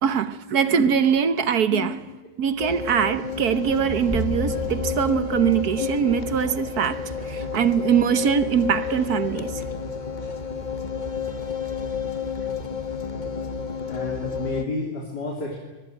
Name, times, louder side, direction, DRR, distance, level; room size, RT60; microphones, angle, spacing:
voice 1, 0.0-1.9 2.4-9.6, right 8 dB, 55° right, 1.3 m, -22 dB
sound 1, 2.6-14.7, left 6 dB, 25° left, 1.1 m, -31 dB
sound 2, 3.7-7.8, right 2 dB, 30° right, 0.5 m, -34 dB
voice 2, 13.9-15.6, left 3 dB, 50° left, 4.0 m, -31 dB
24.0 x 20.5 x 9.0 m
omnidirectional pair, 2.3 m